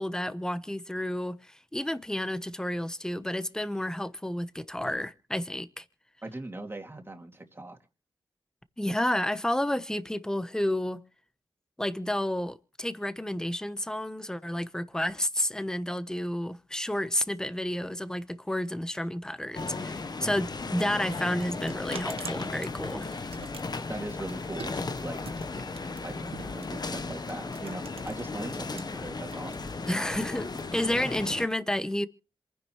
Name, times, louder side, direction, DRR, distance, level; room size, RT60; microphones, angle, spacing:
voice 1, 0.0-5.8 8.8-11.0 11.8-23.2 29.9-32.1, left 1 dB, 5° left, 1.0 m, -31 dB
voice 2, 6.2-7.8 23.9-24.8 25.0-25.2 26.0-29.7, right 2 dB, 25° right, 2.6 m, -40 dB
sound 1, 19.5-31.5, left 3 dB, 45° left, 1.0 m, -36 dB
sound 2, 21.4-28.8 29.1-31.1, right 6 dB, 85° right, 0.9 m, -47 dB
27.0 x 10.0 x 3.2 m
cardioid pair, 65°, 10 cm